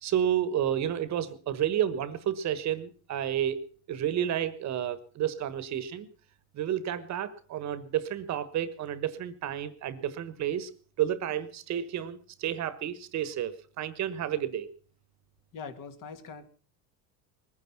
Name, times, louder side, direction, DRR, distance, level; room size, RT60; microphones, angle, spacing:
voice 1, 0.0-3.6 3.9-6.1 6.5-10.7 11.0-14.7, right 10 dB, 40° right, 14 dB, 1.3 m, -31 dB
voice 2, 15.5-16.5, left 5 dB, 45° left, 9 dB, 2.1 m, -42 dB
20.5 x 9.6 x 5.8 m, 0.42 s
supercardioid pair, 135°, 43 cm